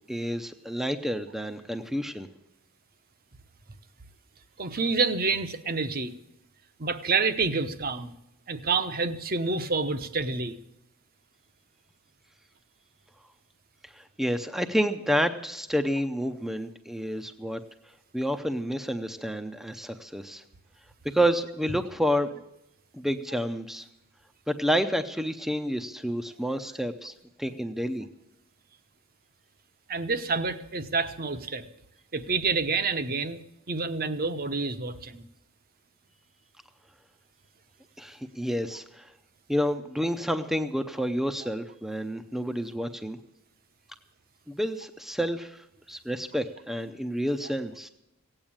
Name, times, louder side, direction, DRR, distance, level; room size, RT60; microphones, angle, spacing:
voice 1, 0.1-2.3 13.8-17.6 18.1-20.4 21.0-22.3 22.9-23.9 24.5-27.1 27.4-28.1 38.0-39.1 39.5-43.2 44.5-47.9, equal, ahead, 7 dB, 0.6 m, -29 dB
voice 2, 4.6-6.1 6.8-8.1 8.5-10.6 29.9-31.7 32.1-35.2, right 4 dB, 40° right, 11 dB, 0.9 m, -28 dB
17.0 x 8.9 x 8.7 m, 0.84 s
head